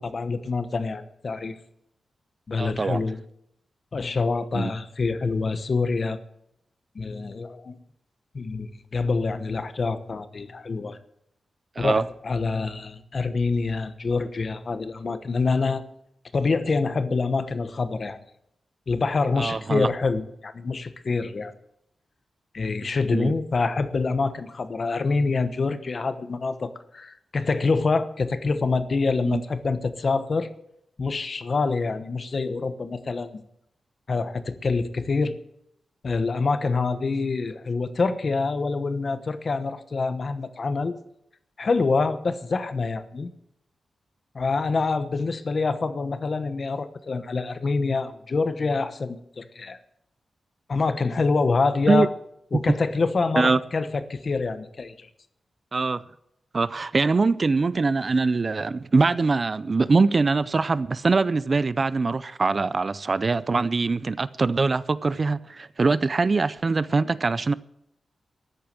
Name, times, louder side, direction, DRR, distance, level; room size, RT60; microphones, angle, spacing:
voice 1, 0.0-1.6 2.5-3.2 3.9-6.2 6.9-7.8 8.3-11.0 11.8-15.8 16.3-18.2 18.9-21.5 22.5-30.5 31.0-33.4 34.1-35.4 36.0-41.0 41.6-43.3 44.3-49.8 50.7-52.1 52.5-55.1, left 4 dB, 40° left, 1.1 m, -26 dB
voice 2, 2.6-3.0 4.5-4.7 11.8-12.1 19.4-19.9 23.1-23.3 29.2-29.4 51.9-52.1 53.4-53.6 55.7-56.0 56.5-67.5, right 4 dB, 35° right, 0.4 m, -23 dB
14.0 x 10.5 x 7.7 m
wide cardioid pair, 155°, 0 cm